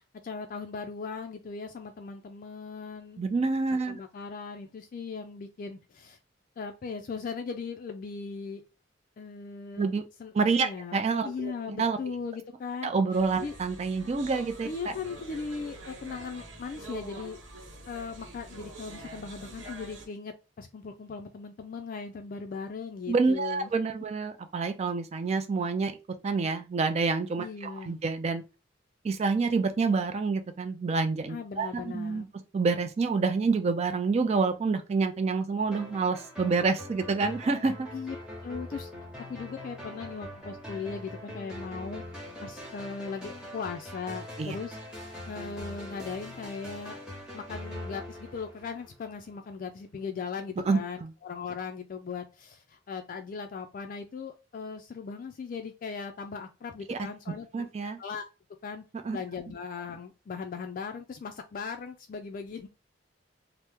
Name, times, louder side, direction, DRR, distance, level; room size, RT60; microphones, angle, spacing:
voice 1, 0.2-3.2 3.7-6.2 6.6-8.6 9.2-9.9 10.2-12.9 13.4-13.6 14.6-17.4 17.9-23.7 27.4-28.0 31.3-32.3 37.9-38.2 38.4-38.9 39.3-42.0 42.4-44.8 45.0-47.0 47.3-57.7 58.0-58.2 58.6-58.8 59.1-62.7, left 5 dB, 45° left, 0.3 m, -38 dB
voice 2, 3.2-4.0 9.8-10.0 10.3-12.0 12.8-14.7 23.1-25.9 26.2-28.4 29.0-32.2 32.5-37.9 44.4-44.6 50.7-51.1 56.9-57.0 57.5-58.0 59.0-59.2, right 4 dB, 35° right, 0.3 m, -27 dB
sound 1, 13.1-20.1, right 2 dB, 75° right, 0.9 m, -45 dB
sound 2, 35.7-49.2, left 1 dB, 5° right, 0.9 m, -42 dB
2.9 x 2.0 x 3.4 m
head